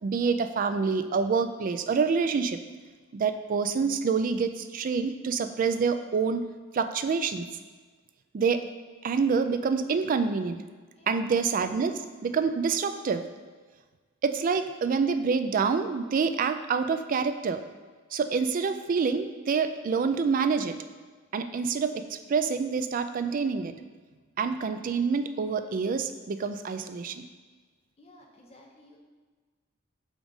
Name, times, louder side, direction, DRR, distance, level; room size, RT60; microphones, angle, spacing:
voice 1, 0.0-2.6 3.1-6.4 6.7-7.4 8.3-8.6 9.0-10.6 11.1-11.9 12.2-13.2 14.2-17.6 18.1-20.8 21.3-23.7 24.4-27.2, right 5 dB, 40° right, 9 dB, 0.3 m, -27 dB
voice 2, 11.0-11.4 28.0-29.0, left 1 dB, 30° left, 0 dB, 0.8 m, -54 dB
7.0 x 2.5 x 5.3 m, 1.4 s
head